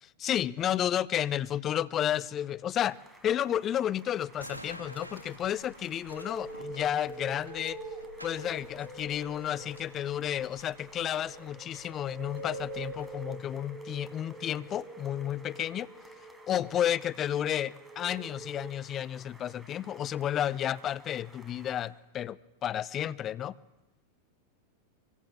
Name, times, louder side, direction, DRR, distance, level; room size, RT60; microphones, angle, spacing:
voice 1, 0.2-3.0 3.2-7.8 8.2-15.9 16.5-23.5, left 10 dB, 30° left, 0.9 m, -32 dB
sound 1, 2.8-21.9, right 2 dB, 10° right, 4.9 m, -57 dB
sound 2, 4.3-13.1, equal, 85° right, 3.4 m, -50 dB
sound 3, 6.1-18.7, right 2 dB, 30° right, 5.2 m, -45 dB
25.0 x 24.5 x 7.4 m
figure-of-eight pair, 90°, 0 cm